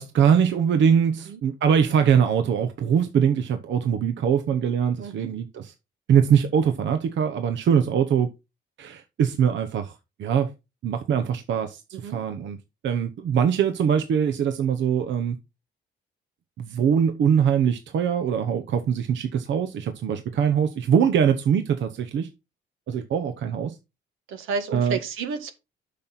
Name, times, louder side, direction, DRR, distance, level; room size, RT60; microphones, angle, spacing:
voice 1, 0.0-5.7 6.1-8.3 8.8-10.5 10.8-12.6 12.8-15.4 16.6-22.3 22.9-23.8 24.7-25.0, right 7 dB, 70° right, 0.9 m, -22 dB
voice 2, 5.0-5.3 12.0-12.2 24.3-25.5, right 5 dB, 90° right, 1.7 m, -31 dB
8.5 x 6.0 x 4.2 m
cardioid pair, 90°, 20 cm